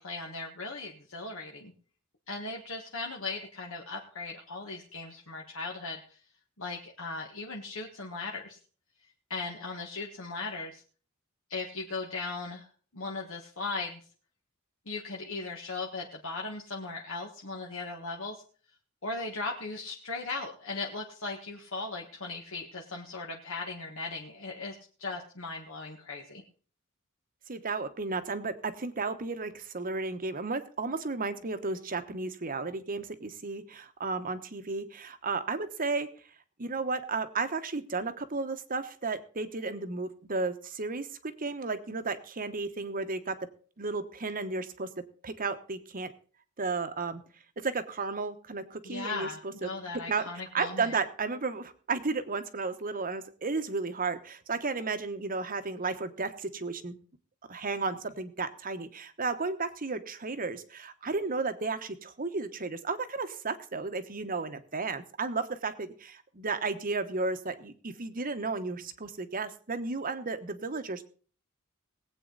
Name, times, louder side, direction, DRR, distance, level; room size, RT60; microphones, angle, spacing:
voice 1, 0.0-1.7 2.3-6.2 6.6-8.6 9.3-10.8 11.5-12.7 12.9-14.0 14.9-18.4 19.0-26.4 48.8-51.0, left 3 dB, 65° left, 0 dB, 1.5 m, -38 dB
voice 2, 27.5-36.1 36.6-43.4 43.8-44.9 45.2-46.1 46.6-47.2 47.6-49.7 50.1-50.3 50.5-57.0 57.5-71.0, right 4 dB, 40° right, 10 dB, 1.1 m, -33 dB
19.5 x 8.5 x 4.0 m, 0.41 s
head